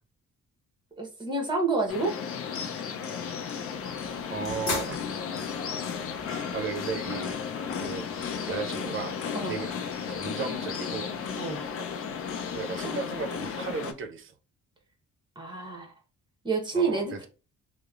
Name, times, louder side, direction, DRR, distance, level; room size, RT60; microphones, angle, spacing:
voice 1, 1.0-2.2 9.3-9.6 11.4-11.6 15.4-15.9 16.4-17.3, right 3 dB, 15° right, 0.9 m, -28 dB
sound 1, 1.9-13.9, left 6 dB, 50° left, 0.4 m, -34 dB
sound 2, 3.2-14.0, left 4 dB, 65° left, 0.9 m, -44 dB
voice 2, 4.3-5.0 6.3-8.1 8.4-9.2 9.4-9.8 10.1-11.1 11.8-11.9 12.5-14.3 16.7-17.3, right 5 dB, 45° right, 0.5 m, -35 dB
2.9 x 2.0 x 2.3 m
cardioid pair, 90°, 30 cm